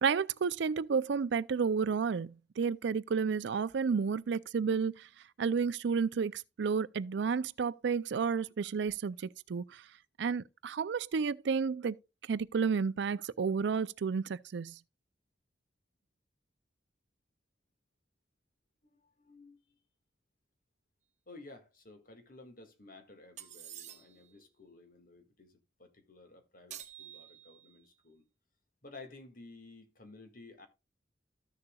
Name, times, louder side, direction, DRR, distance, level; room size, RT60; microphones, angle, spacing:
voice 1, 0.0-5.1 5.4-9.8 10.2-12.0 12.3-14.8, right 5 dB, 70° right, 0.4 m, -31 dB
voice 2, 19.2-19.6 21.3-28.2 28.8-30.7, left 3 dB, 50° left, 1.9 m, -54 dB
sound 1, 23.4-24.3 26.7-27.8, right 10 dB, 40° right, 1.0 m, -49 dB
14.0 x 6.8 x 2.3 m
head